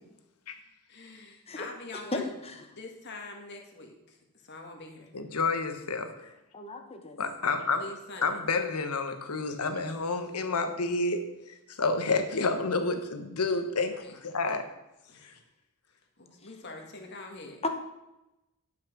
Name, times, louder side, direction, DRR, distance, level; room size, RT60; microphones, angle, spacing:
voice 1, 0.9-2.3 2.7-4.2 4.4-5.1 7.7-8.4 14.0-14.1 15.1-15.4 16.2-17.6, left 2 dB, 50° left, 2 dB, 1.8 m, -44 dB
voice 2, 2.1-2.5 6.5-7.2 17.6-17.7, left 2 dB, 25° left, 5 dB, 1.1 m, -34 dB
voice 3, 5.1-6.3 7.2-7.8 8.2-11.2 11.5-14.6 15.2-15.3, left 3 dB, 85° left, 7 dB, 1.2 m, -29 dB
10.5 x 5.8 x 6.1 m, 0.95 s
head